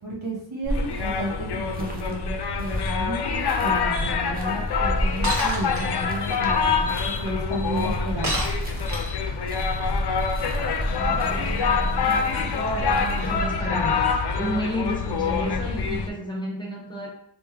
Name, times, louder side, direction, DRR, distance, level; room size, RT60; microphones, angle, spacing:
voice 1, 0.0-8.4, right 1 dB, 80° right, -3 dB, 1.1 m, -32 dB
sound 1, 0.6-13.4, right 1 dB, 20° right, 0.5 m, -32 dB
sound 2, 0.7-16.1, left 5 dB, 60° left, 0.5 m, -26 dB
Shatter, 5.2-5.8 8.2-9.3, right 1 dB, 40° right, 1.1 m, -28 dB
voice 2, 10.9-17.1, equal, 10° left, -2 dB, 0.9 m, -32 dB
3.3 x 2.5 x 3.5 m, 0.71 s
wide cardioid pair, 90°, 45 cm